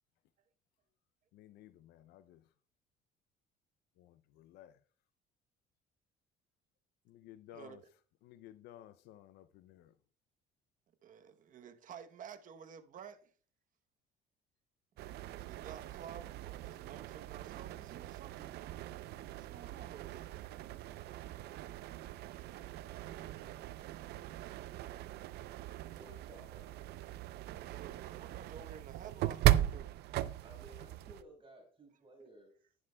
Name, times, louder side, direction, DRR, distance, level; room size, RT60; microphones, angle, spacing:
voice 1, 1.3-2.5 4.0-4.8 7.1-7.8 8.2-10.0, left 12 dB, 80° left, 0.5 m, -56 dB
voice 2, 11.0-13.3 15.0-18.5 19.4-20.4 27.6-30.0, right 8 dB, 50° right, 0.9 m, -52 dB
sound 1, 15.0-31.2, right 14 dB, 75° right, 0.5 m, -38 dB
voice 3, 25.6-26.9 30.4-32.5, right 1 dB, 30° right, 4.8 m, -57 dB
11.0 x 9.7 x 2.2 m
cardioid pair, 110°, 17 cm